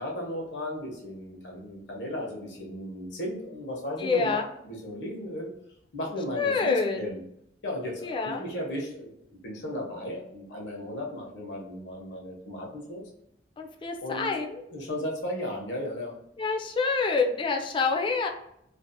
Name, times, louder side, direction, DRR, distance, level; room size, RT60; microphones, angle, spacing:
voice 1, 0.0-4.4 4.6-5.5 5.9-7.2 7.6-13.0 14.0-14.3 14.7-16.1, left 1 dB, 85° left, -1 dB, 0.8 m, -35 dB
voice 2, 4.0-4.5 6.3-7.1 8.0-8.4 13.6-14.6 16.4-18.3, left 4 dB, 30° left, 3 dB, 0.3 m, -27 dB
2.5 x 2.0 x 2.6 m, 0.76 s
head